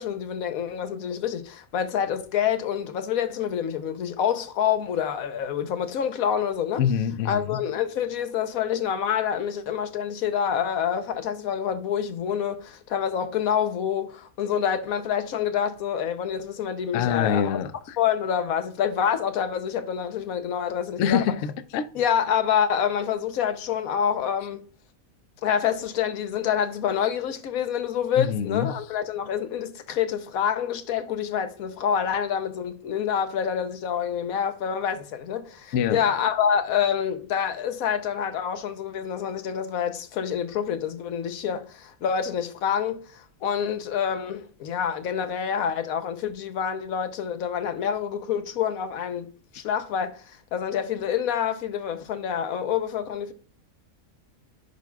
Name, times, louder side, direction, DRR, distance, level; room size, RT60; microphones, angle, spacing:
voice 1, 0.0-6.8 7.2-17.6 18.0-21.3 21.9-24.7 25.4-53.3, left 8 dB, 85° left, 1.2 m, -27 dB
voice 2, 6.8-7.6 16.9-18.0 21.0-21.9 28.2-28.7 35.7-36.0, left 8 dB, 70° left, 0.8 m, -25 dB
10.5 x 4.8 x 2.3 m
omnidirectional pair, 1.5 m